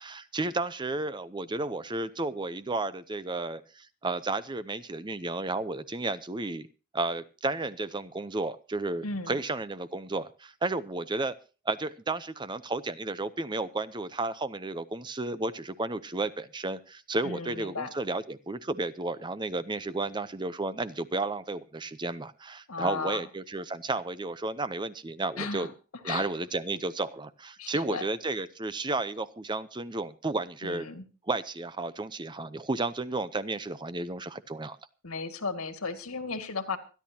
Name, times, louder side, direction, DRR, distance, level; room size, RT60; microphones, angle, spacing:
voice 1, 0.0-6.7 6.9-11.3 11.6-25.7 26.0-30.9 31.2-34.8, right 2 dB, 20° right, 14 dB, 0.6 m, -32 dB
voice 2, 9.0-9.4 17.2-17.9 22.7-23.2 25.4-25.7 26.1-26.3 27.6-28.0 30.6-31.0 35.0-36.8, left 4 dB, 85° left, 8 dB, 2.1 m, -35 dB
25.0 x 10.5 x 2.8 m, 0.34 s
head